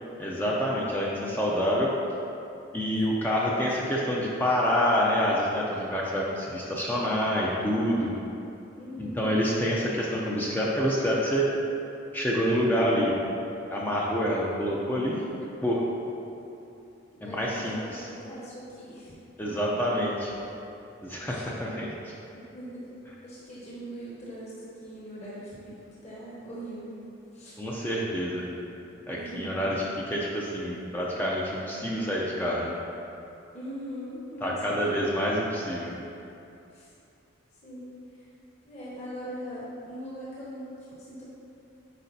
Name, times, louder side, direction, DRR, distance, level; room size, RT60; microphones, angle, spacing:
voice 1, 0.2-1.9 2.7-8.1 9.0-11.5 12.1-13.2 13.7-15.2 15.6-15.8 17.2-18.1 19.4-20.3 21.0-22.1 27.6-28.5 29.1-32.7 34.4-35.9, equal, 10° left, -5 dB, 0.5 m, -27 dB
voice 2, 8.7-9.4 17.1-19.1 21.3-21.4 22.5-22.9 23.2-27.0 27.3-27.5 29.2-29.6 33.5-35.0 36.7-36.9 37.6-38.3 38.6-40.7 41.0-41.2, equal, 35° left, -8 dB, 1.2 m, -41 dB
8.3 x 5.0 x 2.7 m, 2.8 s
head